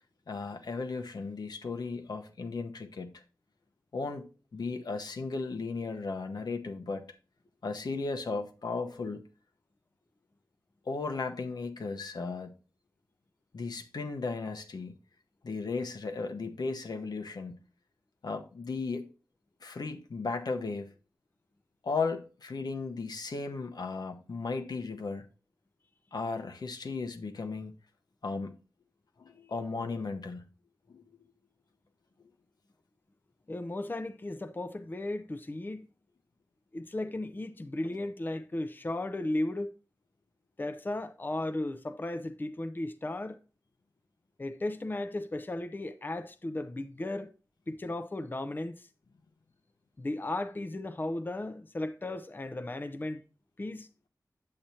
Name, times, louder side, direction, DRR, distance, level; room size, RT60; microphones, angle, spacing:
voice 1, 0.3-3.2 3.9-7.0 7.6-9.3 10.8-12.5 13.5-14.9 15.4-17.6 18.2-19.1 19.6-20.9 21.8-25.3 26.1-27.8 28.2-28.5 29.2-30.4 30.9-31.0, left 4 dB, 85° left, 1.0 m, -35 dB
voice 2, 33.5-35.9 36.7-39.7 40.6-43.4 44.4-47.3 47.7-48.9 50.0-53.2 53.6-53.9, left 1 dB, 30° left, 0.6 m, -35 dB
8.7 x 7.7 x 2.8 m
wide cardioid pair, 90°, 7 cm